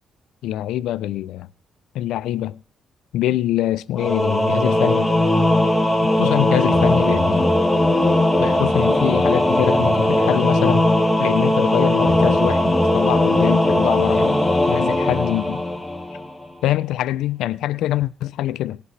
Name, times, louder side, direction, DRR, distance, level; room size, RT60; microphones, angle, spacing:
voice 1, 0.4-1.5 1.9-2.6 3.1-5.1 6.0-7.5 8.4-10.9 11.2-15.6 16.6-18.8, left 13 dB, 85° left, 0.4 m, -24 dB
Singing / Musical instrument, 4.0-16.4, left 1 dB, 5° left, 1.3 m, -18 dB
18.5 x 8.3 x 3.2 m
cardioid pair, 90°, 0 cm